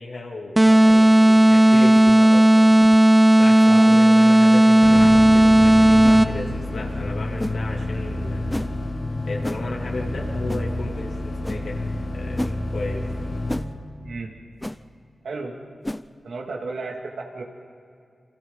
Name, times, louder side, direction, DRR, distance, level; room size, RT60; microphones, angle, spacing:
voice 1, 0.0-2.7 3.4-8.6 9.3-11.9 12.1-13.0, left 2 dB, 75° left, -1 dB, 2.9 m, -34 dB
sound 1, 0.6-6.5, right 1 dB, 20° right, 0.8 m, -14 dB
sound 2, 0.8-1.0 1.9-2.1 2.8-3.0 3.9-4.0 5.0-5.2 6.0-6.2 7.4-7.6 8.5-8.7 9.4-9.6 10.5-10.7 11.4-11.6 12.4-12.6 13.5-13.7 14.6-14.8 15.8-16.0, left 1 dB, 10° left, 0.6 m, -31 dB
sound 3, 4.8-13.6, left 1 dB, 55° left, 2.5 m, -29 dB
voice 2, 15.2-15.7 16.2-17.4, right 3 dB, 85° right, 0 dB, 2.5 m, -33 dB
29.0 x 23.5 x 4.1 m, 2.4 s
cardioid pair, 55°, 0 cm